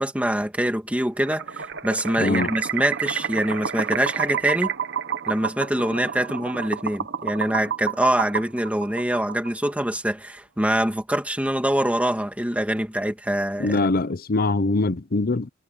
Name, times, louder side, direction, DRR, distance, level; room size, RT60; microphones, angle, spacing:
voice 1, 0.0-4.7 5.3-13.8, right 1 dB, 5° right, 2.4 m, -24 dB
sound 1, 1.2-9.7, right 8 dB, 55° right, 1.3 m, -29 dB
voice 2, 2.2-2.5 13.6-15.5, left 2 dB, 45° left, 0.8 m, -23 dB
head